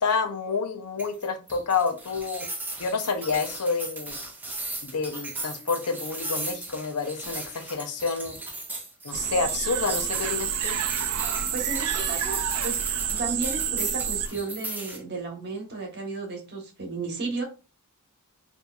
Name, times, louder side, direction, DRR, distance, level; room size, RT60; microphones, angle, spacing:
voice 1, 0.0-2.5 2.8-4.2 4.8-8.4 9.0-10.8, left 4 dB, 85° left, 7 dB, 0.6 m, -28 dB
sound 1, 1.0-15.0, right 2 dB, 10° right, 0.6 m, -37 dB
sound 2, 9.1-14.3, right 8 dB, 85° right, 0.4 m, -28 dB
voice 2, 11.5-12.8 13.1-17.4, right 3 dB, 50° right, 1 dB, 1.1 m, -33 dB
4.2 x 2.6 x 2.3 m, 0.33 s
head